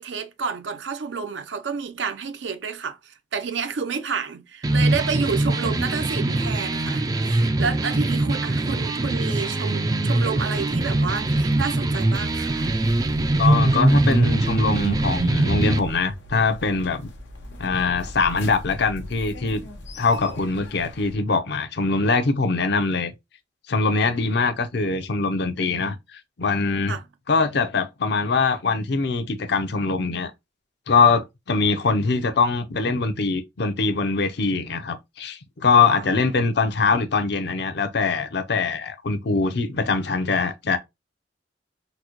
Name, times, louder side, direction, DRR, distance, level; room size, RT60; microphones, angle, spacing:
voice 1, 0.0-12.8 26.9-27.0, right 5 dB, 75° right, 0.5 m, -30 dB
sound 1, 4.6-15.8, right 2 dB, 20° right, 0.3 m, -22 dB
sound 2, 10.5-21.2, left 1 dB, 90° left, 1.0 m, -39 dB
voice 2, 13.4-17.1 17.6-19.6 20.0-23.1 23.7-26.9 27.3-30.3 30.9-40.8, left 4 dB, 65° left, 0.6 m, -22 dB
3.9 x 2.1 x 2.9 m
head